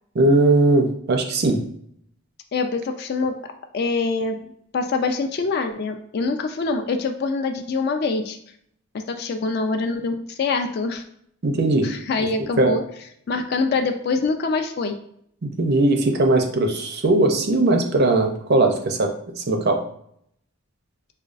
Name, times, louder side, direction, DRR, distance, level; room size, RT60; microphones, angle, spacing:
voice 1, 0.1-1.6 11.4-11.9 12.2-12.3 12.6-12.8 15.4-19.8, right 2 dB, 45° right, 4 dB, 0.5 m, -19 dB
voice 2, 2.5-3.3 3.7-8.4 8.9-11.0 11.8-12.8 13.3-15.0, left 4 dB, 45° left, 6 dB, 0.3 m, -24 dB
4.9 x 2.3 x 2.4 m, 0.67 s
head